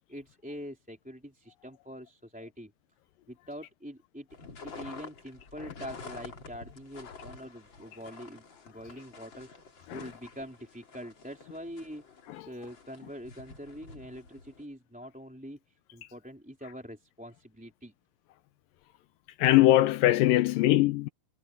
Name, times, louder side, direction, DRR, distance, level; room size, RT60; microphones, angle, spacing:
voice 1, 0.1-2.7 3.3-4.3 4.6-9.5 9.9-12.0 12.5-15.6 15.9-17.9, equal, ahead, 3.2 m, -44 dB
sound 1, 4.3-14.6, left 4 dB, 35° left, 3.0 m, -49 dB
voice 2, 19.4-21.1, left 15 dB, 85° left, 2.4 m, -22 dB
omnidirectional pair, 3.9 m